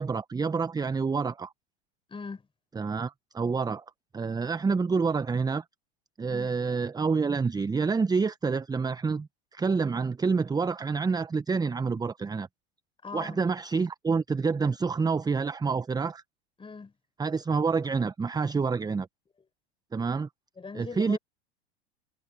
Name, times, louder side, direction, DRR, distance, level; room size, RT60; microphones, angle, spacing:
voice 1, 0.0-1.5 2.7-3.8 4.1-5.6 6.2-12.5 13.1-16.2 17.2-19.1 19.9-20.3 20.7-21.2, right 5 dB, 10° right, 1.0 m, -28 dB
voice 2, 2.1-2.5 6.3-6.5 13.0-13.4 16.6-16.9 20.6-21.2, left 4 dB, 15° left, 5.4 m, -40 dB
hypercardioid pair, 90°, 32 cm